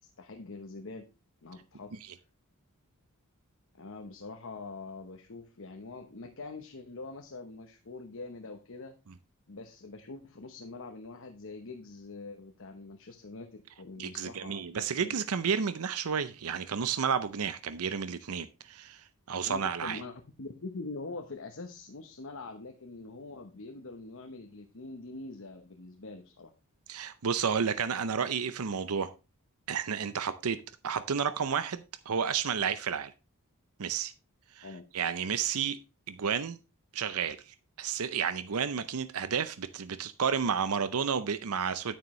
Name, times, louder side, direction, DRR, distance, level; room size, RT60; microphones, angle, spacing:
voice 1, 0.2-1.0 1.4-1.9 3.7-8.9 9.5-13.5 13.8-15.1 19.4-26.5 34.6-34.8, left 3 dB, 60° left, 1.0 m, -44 dB
voice 2, 14.0-20.0 26.9-29.1 29.7-33.1 33.8-34.1 34.5-34.7 34.9-35.8 36.1-36.6 36.9-41.9, right 6 dB, 75° right, 0.6 m, -31 dB
9.7 x 9.2 x 3.1 m
head